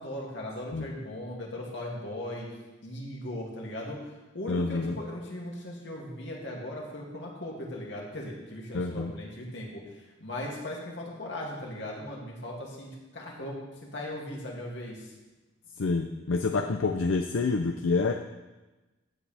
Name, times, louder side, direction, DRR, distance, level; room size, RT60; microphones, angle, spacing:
voice 1, 0.0-2.5 2.8-4.0 4.3-9.8 10.2-12.9 13.1-13.6 13.8-15.1, left 1 dB, 60° left, -2 dB, 2.5 m, -38 dB
voice 2, 4.5-5.0 8.7-9.1 15.8-18.1, left 3 dB, 80° left, 6 dB, 0.6 m, -27 dB
15.0 x 8.8 x 3.4 m, 1.1 s
head